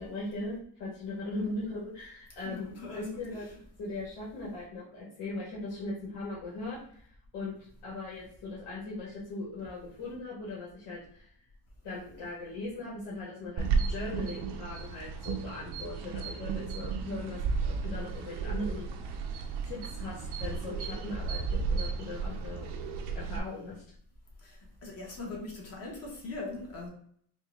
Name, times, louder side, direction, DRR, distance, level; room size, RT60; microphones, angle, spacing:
voice 1, 0.0-3.5 3.8-7.1 7.3-7.5 7.8-11.3 11.8-19.0 19.6-22.7 23.1-23.8, left 2 dB, 85° left, -6 dB, 1.5 m, -39 dB
voice 2, 2.4-3.6 22.5-22.6 24.4-26.9, left 3 dB, 35° left, -1 dB, 1.2 m, -41 dB
sound 1, 13.6-23.4, right 5 dB, 75° right, 0.7 m, -33 dB
4.6 x 2.3 x 3.5 m, 0.62 s
cardioid pair, 150°, 42 cm